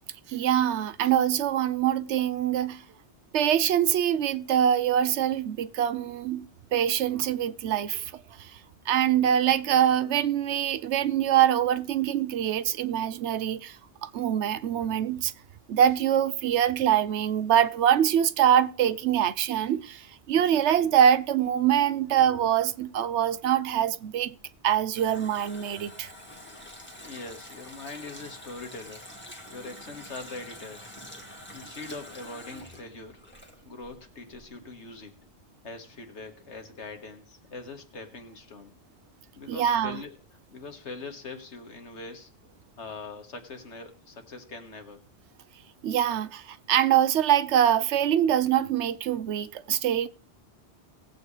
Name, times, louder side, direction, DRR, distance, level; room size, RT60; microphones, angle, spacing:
voice 1, 0.3-2.8 3.3-8.5 8.9-13.8 14.0-15.3 15.7-24.3 24.6-26.1 39.5-40.0 45.8-50.1, right 10 dB, 85° right, 1.0 m, -24 dB
Water tap faucet, 24.4-34.0 34.3-34.4, left 1 dB, 10° left, 1.8 m, -46 dB
voice 2, 27.0-29.1 29.5-31.0 31.5-33.2 33.7-35.1 35.6-38.7 39.4-40.2 40.5-42.3 42.8-45.0, left 3 dB, 90° left, 1.9 m, -42 dB
19.0 x 7.9 x 3.2 m
omnidirectional pair, 1.1 m